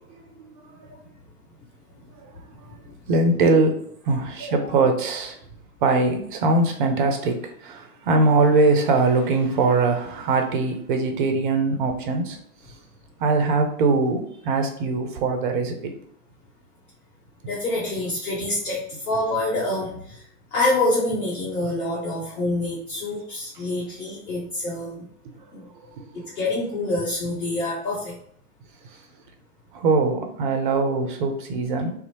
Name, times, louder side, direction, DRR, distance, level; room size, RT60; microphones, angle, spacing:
voice 1, 0.4-0.9 2.2-2.4 3.1-3.8 4.0-5.4 5.8-12.4 13.2-15.9 25.8-26.2 28.8-29.0 29.7-31.9, right 3 dB, 35° right, 4 dB, 0.4 m, -22 dB
voice 2, 17.4-20.2 20.5-25.1 25.5-25.6 26.4-28.2, left 2 dB, 65° left, -5 dB, 0.9 m, -26 dB
2.6 x 2.0 x 2.8 m, 0.66 s
figure-of-eight pair, 105°, 46 cm